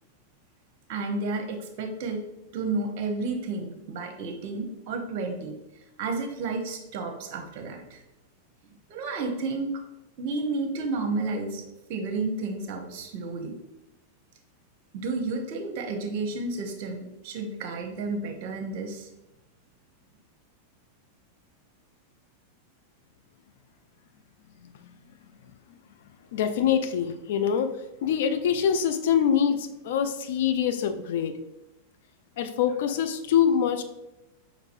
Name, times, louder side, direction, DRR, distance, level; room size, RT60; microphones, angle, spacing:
voice 1, 0.9-2.2 2.5-5.6 6.0-8.0 8.9-9.7 10.2-11.6 11.9-13.6 14.9-19.1, right 3 dB, 45° right, 5 dB, 0.7 m, -31 dB
voice 2, 26.3-27.7 28.0-31.3 32.4-33.8, left 8 dB, 55° left, 9 dB, 0.4 m, -24 dB
5.9 x 3.1 x 2.5 m, 0.93 s
figure-of-eight pair, 90°, 0 cm